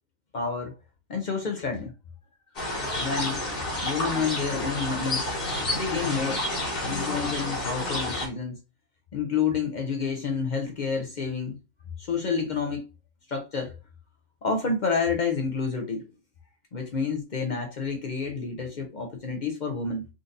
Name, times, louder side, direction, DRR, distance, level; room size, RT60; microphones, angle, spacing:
voice 1, 0.3-0.8 1.1-1.9 2.9-3.4 3.8-5.2 5.7-6.4 6.8-8.6 9.1-11.6 12.0-12.8 13.3-13.8 14.4-16.1 16.7-20.1, left 5 dB, 65° left, 0.4 m, -29 dB
sound 1, 2.6-8.3, left 1 dB, 45° left, 1.3 m, -30 dB
3.8 x 2.5 x 2.5 m
omnidirectional pair, 1.5 m